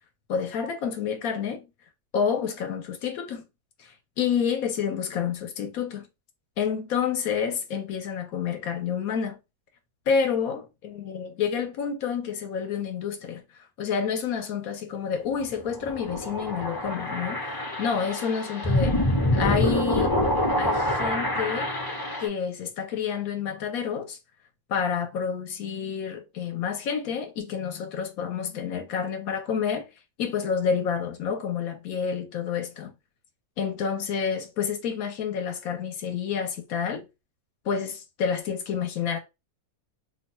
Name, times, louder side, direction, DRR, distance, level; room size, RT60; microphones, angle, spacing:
voice 1, 0.3-1.6 2.1-3.4 3.8-6.1 6.6-9.4 10.1-13.4 13.8-19.0 19.3-20.2 20.6-21.7 22.2-24.2 24.7-29.8 30.2-32.9 33.6-37.0 37.6-39.2, left 7 dB, 75° left, 1.2 m, -29 dB
sound 1, 15.3-22.3, left 1 dB, 25° left, 0.5 m, -26 dB
2.8 x 2.3 x 4.1 m
omnidirectional pair, 1.5 m